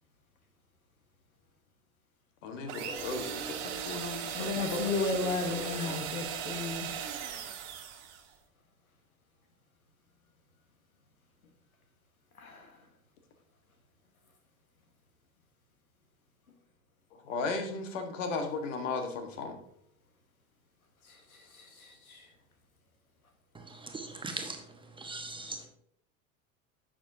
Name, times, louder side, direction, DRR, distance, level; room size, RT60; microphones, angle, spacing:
voice 1, 2.4-5.0 5.2-6.0 17.2-19.6, left 3 dB, 60° left, 1.6 m, -36 dB
sound 1, 2.7-8.3, right 8 dB, 55° right, 1.4 m, -38 dB
voice 2, 4.3-6.9 12.4-12.7 21.5-22.2, left 3 dB, 80° left, 1.6 m, -34 dB
voice 3, 23.5-25.7, right 3 dB, 10° right, 1.2 m, -41 dB
11.5 x 7.5 x 2.8 m
figure-of-eight pair, 75°, 42 cm